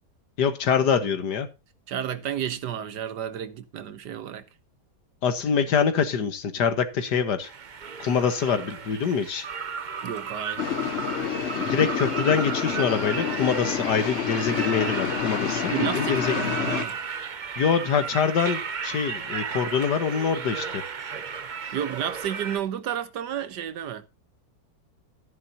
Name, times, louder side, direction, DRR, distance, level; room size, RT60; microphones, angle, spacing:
voice 1, 0.4-1.5 5.2-7.5 8.0-9.5 11.5-16.5 17.6-20.8, left 6 dB, 80° left, 2.0 m, -25 dB
voice 2, 1.9-4.4 10.0-10.7 15.7-17.0 21.1-24.0, right 9 dB, 80° right, 1.6 m, -32 dB
sound 1, 7.4-22.6, right 6 dB, 45° right, 0.6 m, -34 dB
sound 2, 10.6-16.8, left 9 dB, 50° left, 0.9 m, -29 dB
13.5 x 10.5 x 2.8 m
omnidirectional pair, 1.8 m